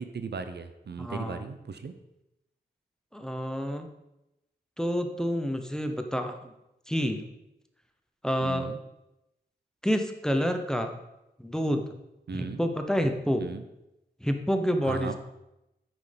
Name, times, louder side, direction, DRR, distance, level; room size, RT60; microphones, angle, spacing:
voice 1, 0.0-1.9 8.4-8.8 12.3-12.6 13.4-13.6 14.8-15.2, right 5 dB, 70° right, 9 dB, 0.8 m, -37 dB
voice 2, 1.0-1.4 3.1-3.9 4.8-6.5 6.9-7.2 8.2-8.7 9.8-11.0 11.4-11.8 12.3-13.4 14.2-15.2, equal, 5° left, 6 dB, 0.9 m, -28 dB
8.9 x 6.5 x 5.2 m, 0.91 s
wide cardioid pair, 105°, 18 cm